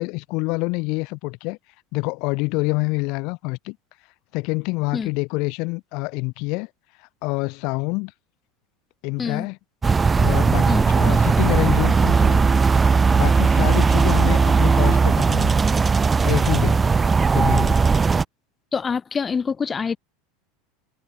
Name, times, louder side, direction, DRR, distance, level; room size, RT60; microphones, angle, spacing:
voice 1, 0.0-1.6 1.9-3.8 4.3-6.7 7.0-8.1 9.0-9.6 10.2-12.4 13.1-15.5 16.2-16.8 17.3-17.8, left 28 dB, 55° left, 2.9 m, -26 dB
sound 1, 9.8-18.2, right 4 dB, 15° right, 2.6 m, -18 dB
voice 2, 18.7-20.0, left 5 dB, 20° left, 5.1 m, -26 dB
supercardioid pair, 130°, 0 cm